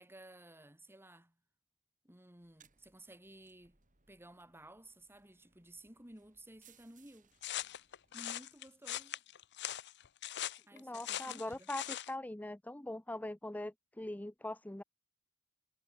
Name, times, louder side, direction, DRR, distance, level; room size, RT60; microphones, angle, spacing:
voice 1, 0.0-1.3 2.0-3.8 4.1-7.3 8.1-9.2 10.7-11.7, right 1 dB, 10° right, 3.3 m, -56 dB
sound 1, 2.4-8.8, right 7 dB, 35° right, 4.4 m, -70 dB
sound 2, 7.4-12.1, left 12 dB, 50° left, 0.7 m, -41 dB
voice 2, 10.7-14.8, left 1 dB, 5° left, 0.6 m, -42 dB
head